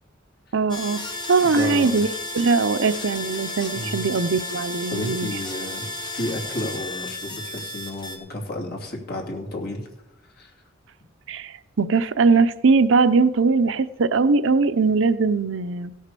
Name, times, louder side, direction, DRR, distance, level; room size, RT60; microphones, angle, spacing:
voice 1, 0.5-5.3 11.3-15.9, right 4 dB, 65° right, 13 dB, 0.6 m, -21 dB
sound 1, 0.7-8.2, left 2 dB, 25° left, 2.0 m, -33 dB
voice 2, 1.4-2.0 3.7-4.1 4.9-9.9 10.4-10.5, left 1 dB, 50° left, 0 dB, 2.8 m, -32 dB
16.5 x 6.5 x 6.8 m, 0.97 s
head